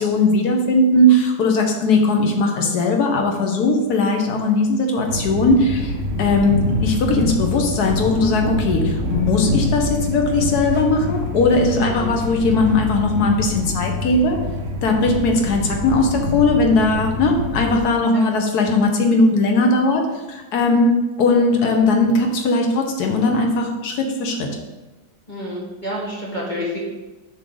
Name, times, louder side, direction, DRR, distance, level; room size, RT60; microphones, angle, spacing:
voice 1, 0.0-14.4 14.8-24.5, left 2 dB, 70° left, 2 dB, 1.5 m, -18 dB
sound 1, 5.1-17.8, left 1 dB, 50° right, 0.9 m, -25 dB
voice 2, 11.8-12.1 16.8-16.9 18.1-18.3 25.3-26.8, left 1 dB, 30° left, -4 dB, 1.5 m, -29 dB
7.4 x 5.7 x 3.9 m, 1.1 s
omnidirectional pair, 1.8 m